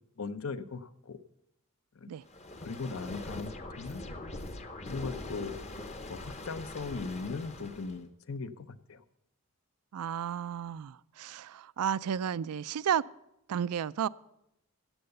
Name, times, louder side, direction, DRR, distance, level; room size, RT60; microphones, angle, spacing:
voice 1, 0.2-1.2 1.9-2.1 2.6-4.0 4.9-5.6 6.1-9.0, left 4 dB, 65° left, 13 dB, 0.7 m, -39 dB
sound 1, 2.2-8.0, left 2 dB, 30° left, 0.9 m, -42 dB
voice 2, 9.9-13.0 13.5-14.1, right 8 dB, 80° right, 20 dB, 0.4 m, -32 dB
15.0 x 7.9 x 6.7 m, 0.85 s
head